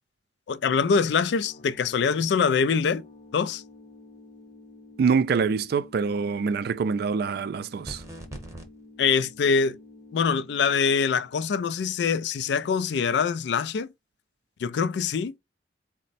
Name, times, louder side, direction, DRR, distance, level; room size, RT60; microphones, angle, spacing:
voice 1, 0.5-3.0 3.3-3.6 9.0-9.8 10.1-13.9 14.6-15.3, left 5 dB, 70° left, 0.3 m, -24 dB
sound 1, 0.7-12.2, left 2 dB, 40° left, 0.7 m, -51 dB
voice 2, 5.0-8.0, right 5 dB, 60° right, 0.3 m, -25 dB
sound 2, 7.8-8.7, right 1 dB, 15° right, 0.8 m, -39 dB
4.1 x 2.1 x 4.0 m
head